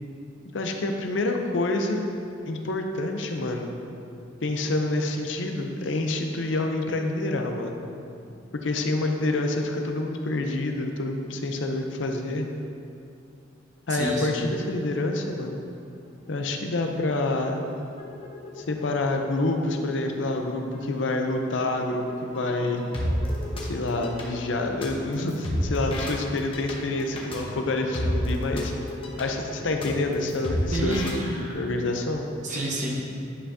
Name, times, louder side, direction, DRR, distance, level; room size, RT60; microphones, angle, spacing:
voice 1, 0.5-2.1 2.5-3.7 4.4-7.8 8.6-12.5 13.9-15.6 16.3-17.7 18.6-22.8 23.7-28.7 29.2-32.3, left 2 dB, 70° left, 3 dB, 0.6 m, -27 dB
voice 2, 13.9-14.3 30.7-31.6 32.4-32.9, right 1 dB, 40° right, -3 dB, 1.1 m, -29 dB
sound 1, 15.7-15.8 16.1-16.5 16.9-31.2, equal, 30° left, 1.0 m, -33 dB
9.9 x 5.6 x 2.7 m, 2.6 s
head